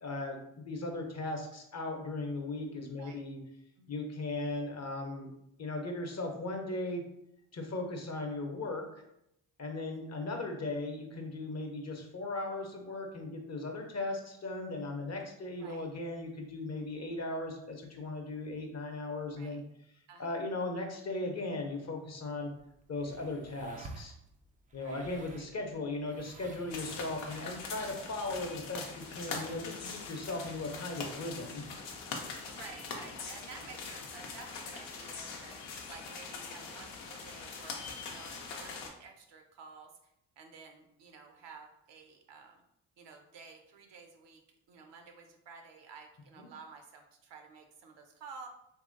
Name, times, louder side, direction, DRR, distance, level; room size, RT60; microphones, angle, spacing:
voice 1, 0.0-0.4 0.6-3.4 3.9-5.3 5.6-7.0 7.5-8.8 9.6-19.6 20.2-22.5 22.9-24.1 24.7-31.6 46.4-46.5, left 2 dB, 35° left, 3 dB, 0.7 m, -37 dB
sound 1, 22.4-28.7, right 3 dB, 20° right, 0.3 m, -53 dB
voice 2, 24.8-25.5 27.2-27.5 32.5-35.6 35.9-39.9 40.4-42.6 43.0-44.4 44.7-48.5, right 5 dB, 60° right, 5 dB, 0.7 m, -52 dB
sound 2, 26.7-38.9, left 4 dB, 85° left, 0.6 m, -42 dB
3.0 x 2.7 x 2.5 m, 0.80 s
supercardioid pair, 50°, 48 cm